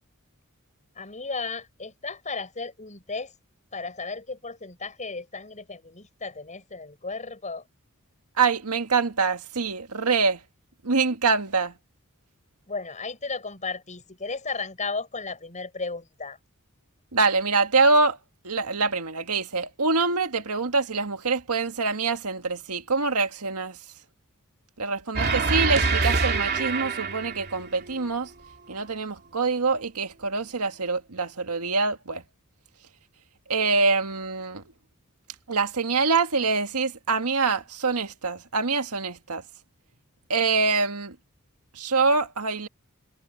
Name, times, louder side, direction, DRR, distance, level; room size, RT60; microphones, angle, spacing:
voice 1, 1.0-3.3 3.7-7.6 12.7-16.4, left 4 dB, 35° left, 7.1 m, -34 dB
voice 2, 8.4-10.4 10.8-11.7 17.1-18.2 18.4-23.8 24.8-28.3 28.7-32.2 33.5-34.6 35.5-39.4 40.3-41.2 41.8-42.7, right 4 dB, 90° right, 1.8 m, -25 dB
sound 1, 25.2-28.1, right 4 dB, 45° right, 3.0 m, -25 dB
head